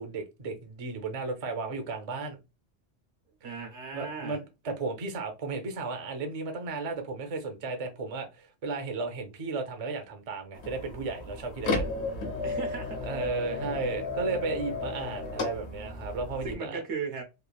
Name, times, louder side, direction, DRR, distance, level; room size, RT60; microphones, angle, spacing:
voice 1, 0.0-2.4 3.9-11.9 13.1-16.8, right 3 dB, 40° right, 0.5 m, -34 dB
voice 2, 3.4-4.4 12.4-13.1 16.4-17.2, right 5 dB, 85° right, 1.2 m, -36 dB
sound 1, 10.5-16.5, left 3 dB, 75° left, 1.0 m, -34 dB
3.1 x 2.4 x 2.2 m
omnidirectional pair, 1.2 m